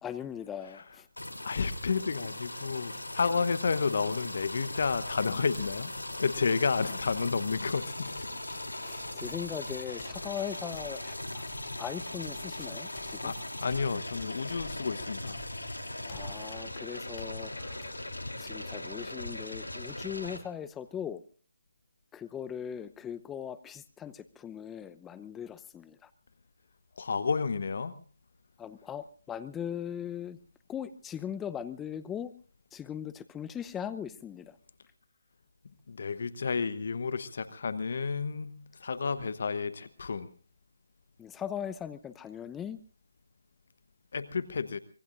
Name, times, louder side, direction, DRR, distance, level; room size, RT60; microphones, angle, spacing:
voice 1, 0.0-1.1 8.8-11.4 11.8-13.3 16.1-17.9 18.4-21.2 22.1-26.1 28.6-30.4 30.7-32.3 32.7-34.6 41.2-42.8, left 9 dB, 10° left, 14 dB, 0.7 m, -39 dB
sound 1, 1.2-20.4, left 1 dB, 80° left, 3.2 m, -39 dB
voice 2, 1.4-8.2 8.8-8.9 13.2-13.3 13.6-15.4 27.0-28.0 35.9-40.3 44.1-44.8, left 5 dB, 55° left, 14 dB, 1.0 m, -31 dB
Run, 3.4-18.7, left 2 dB, 30° left, 4.9 m, -54 dB
25.0 x 21.0 x 2.5 m, 0.40 s
figure-of-eight pair, 150°, 0 cm